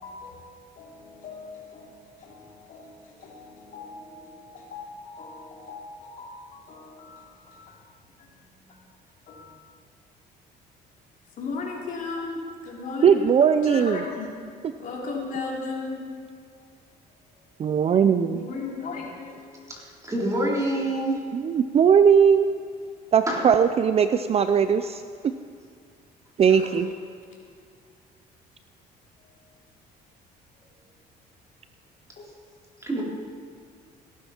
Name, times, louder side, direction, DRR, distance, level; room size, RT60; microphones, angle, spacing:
voice 1, 0.0-7.7 8.2-8.8 9.3-9.5 11.4-13.3 13.6-14.3 14.8-16.0 18.3-19.5 26.5-26.7 32.2-32.3, left 3 dB, 55° left, -2 dB, 3.5 m, -36 dB
voice 2, 13.0-14.0 17.6-18.5 21.3-22.5 23.1-25.0 26.4-26.9, right 7 dB, 35° right, 10 dB, 0.5 m, -19 dB
voice 3, 20.0-21.2 23.3-23.4 32.8-33.0, right 1 dB, 20° right, -3 dB, 3.8 m, -25 dB
18.0 x 12.5 x 4.4 m, 2.2 s
cardioid pair, 110°, 17 cm